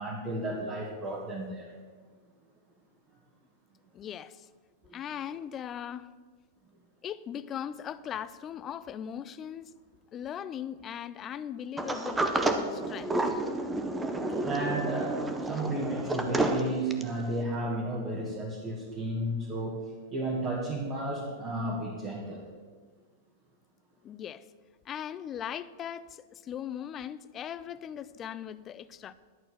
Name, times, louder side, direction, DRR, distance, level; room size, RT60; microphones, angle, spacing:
voice 1, 0.0-1.7 4.9-5.0 14.4-19.8 20.1-22.4, right 1 dB, 30° right, 1.8 m, -33 dB
voice 2, 3.9-4.5 4.9-6.1 7.0-9.7 10.1-12.3 12.7-13.3 24.0-24.5 24.9-29.1, left 9 dB, 30° left, 0.4 m, -39 dB
Sliding door, 11.8-17.2, right 2 dB, 10° right, 0.8 m, -30 dB
11.0 x 4.5 x 7.7 m
hypercardioid pair, 130°, 0 cm